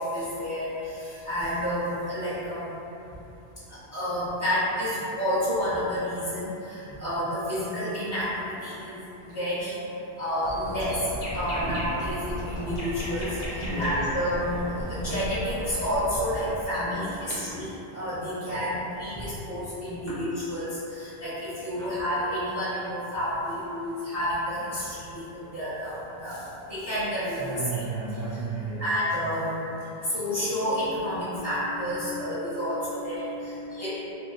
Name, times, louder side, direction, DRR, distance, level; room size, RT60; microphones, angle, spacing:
voice 1, 0.0-2.7 3.9-9.0 9.2-9.8 10.2-11.0 11.3-13.4 13.8-17.7 17.9-25.2 25.5-26.4 26.7-27.4 27.7-27.8 28.8-29.6 30.1-34.0, equal, 20° right, -11 dB, 0.6 m, -30 dB
sound 1, 10.4-16.6, equal, 55° left, 0.6 m, -35 dB
voice 2, 13.6-14.0 16.9-17.1 17.4-17.6 20.1-20.2 21.8-21.9 27.3-28.8 30.4-34.0, right 2 dB, 80° right, -8 dB, 1.0 m, -36 dB
3.0 x 2.6 x 2.4 m, 2.9 s
omnidirectional pair, 1.0 m